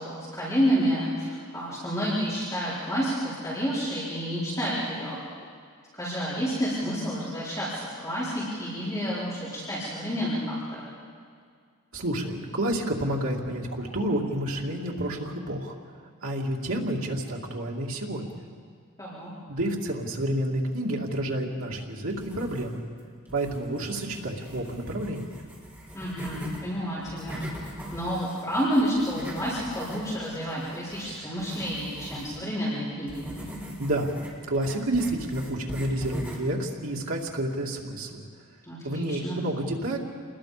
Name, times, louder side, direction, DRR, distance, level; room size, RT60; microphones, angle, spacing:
voice 1, 0.0-5.2 6.0-10.8 19.0-19.3 25.9-27.5 27.9-33.3 38.7-39.4, equal, 15° left, -10 dB, 4.6 m, -29 dB
voice 2, 11.9-15.7 16.2-18.4 19.5-22.8 23.3-25.4 33.8-34.1 34.5-38.2 38.8-40.0, right 1 dB, 75° right, -1 dB, 2.6 m, -29 dB
sound 1, 22.1-22.9 23.3-26.6 27.0-32.4 33.1-36.5, equal, 10° right, 4.1 m, -41 dB
28.0 x 20.5 x 5.2 m, 2.1 s
head